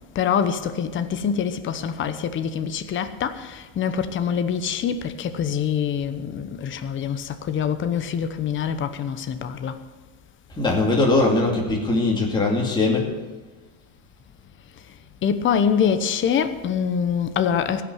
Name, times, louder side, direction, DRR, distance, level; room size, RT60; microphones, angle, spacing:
voice 1, 0.1-9.8 15.2-17.8, left 7 dB, 30° left, 0.9 m, -25 dB
voice 2, 10.6-13.1, left 2 dB, 10° left, 2.5 m, -20 dB
16.0 x 6.1 x 9.5 m
supercardioid pair, 125°, 40 cm